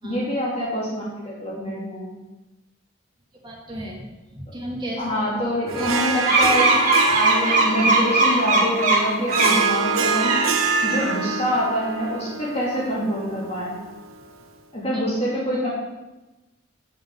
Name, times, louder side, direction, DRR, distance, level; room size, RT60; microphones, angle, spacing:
voice 1, 0.0-2.1 5.0-10.4 10.8-13.8 14.7-15.7, equal, 30° left, -7 dB, 2.9 m, -25 dB
voice 2, 3.4-4.0 4.3-5.4 5.8-5.9 14.9-15.1, right 1 dB, 20° right, -4 dB, 2.9 m, -34 dB
Harp, 5.7-14.3, right 5 dB, 75° right, 1.1 m, -27 dB
sound 1, 6.2-9.7 10.1-11.3, right 2 dB, 35° right, 2.2 m, -20 dB
7.9 x 7.2 x 8.5 m, 1.1 s
head